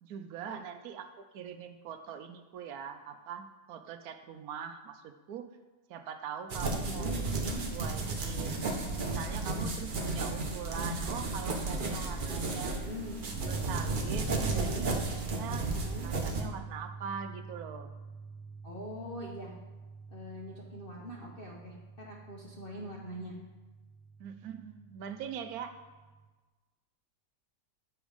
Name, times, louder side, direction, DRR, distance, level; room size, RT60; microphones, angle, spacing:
voice 1, 0.0-5.5 5.9-12.8 13.2-15.7 16.0-17.9 22.5-22.6 24.2-25.8, right 7 dB, 70° right, 8 dB, 1.0 m, -42 dB
sound 1, 6.5-16.4, right 3 dB, 45° right, 0.7 m, -33 dB
voice 2, 6.9-7.6 12.7-13.2 14.5-14.9 15.7-16.1 18.6-19.5 20.1-23.3, equal, 45° left, -3 dB, 0.8 m, -43 dB
sound 2, 13.3-26.3, right 4 dB, 30° left, 1.2 m, -46 dB
7.1 x 5.1 x 5.0 m, 1.2 s
omnidirectional pair, 1.8 m